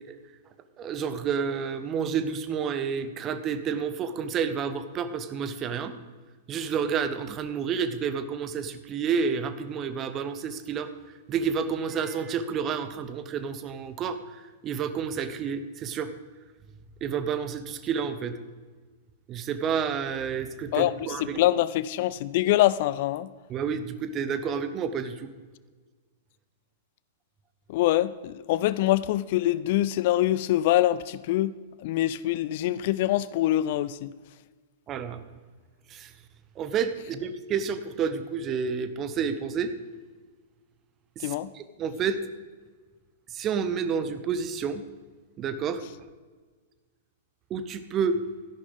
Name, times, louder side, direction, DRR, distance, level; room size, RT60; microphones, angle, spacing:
voice 1, 0.8-5.9 6.5-10.9 11.3-14.2 14.6-16.1 17.0-18.4 19.3-21.4 23.5-25.3 34.9-35.2 35.9-36.1 36.6-39.7 41.2-42.2 43.3-44.8 45.4-45.8 47.5-48.2, right 6 dB, 25° right, 0.8 m, -30 dB
voice 2, 20.7-23.3 27.7-34.1 41.2-41.5, left 14 dB, 45° left, 0.3 m, -25 dB
13.0 x 11.0 x 4.0 m
figure-of-eight pair, 100°, 0 cm